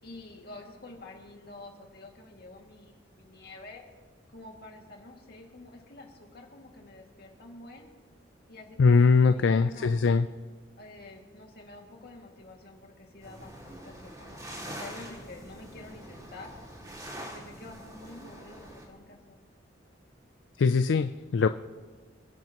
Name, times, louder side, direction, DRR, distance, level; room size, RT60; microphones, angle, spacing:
voice 1, 0.0-3.8 4.3-7.9 8.5-9.9 10.8-16.5 17.1-19.4, left 2 dB, 55° left, 1 dB, 2.3 m, -48 dB
voice 2, 8.8-10.3 20.6-21.5, left 4 dB, 70° left, 10 dB, 0.4 m, -21 dB
sound 1, 13.2-18.9, right 1 dB, 20° right, 2.5 m, -44 dB
26.5 x 11.0 x 3.0 m, 1.4 s
head